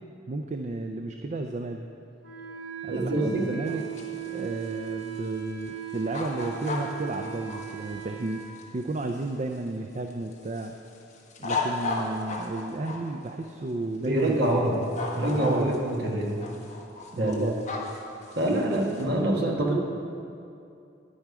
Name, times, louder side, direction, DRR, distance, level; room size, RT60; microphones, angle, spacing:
voice 1, 0.3-1.9 2.8-3.8 4.3-10.8 11.4-14.4 15.4-15.8 17.1-17.6, right 2 dB, 40° right, 4 dB, 0.4 m, -33 dB
Wind instrument woodwind instrument, 2.2-8.4, right 12 dB, 80° right, 1.5 m, -37 dB
voice 2, 2.9-3.5 14.0-14.8 15.1-16.3 17.2-17.5 18.3-19.8, right 1 dB, 55° right, -1 dB, 1.5 m, -25 dB
sound 1, 3.7-9.7 10.1-13.0 14.0-14.5 14.8-16.0 16.3-19.0, left 3 dB, 35° left, 1.3 m, -35 dB
10.5 x 10.0 x 4.8 m, 2.6 s
head